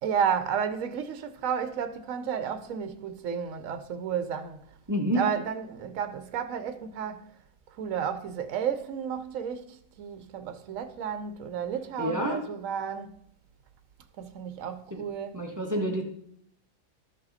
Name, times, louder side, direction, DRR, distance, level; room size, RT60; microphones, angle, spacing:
voice 1, 0.0-4.6 5.1-7.2 7.8-13.1 14.2-15.4, right 7 dB, 75° right, 1.1 m, -32 dB
voice 2, 4.9-5.2 12.0-12.4 14.9-15.0 15.3-16.0, equal, 15° right, 1.1 m, -28 dB
13.0 x 5.3 x 4.1 m
omnidirectional pair, 1.4 m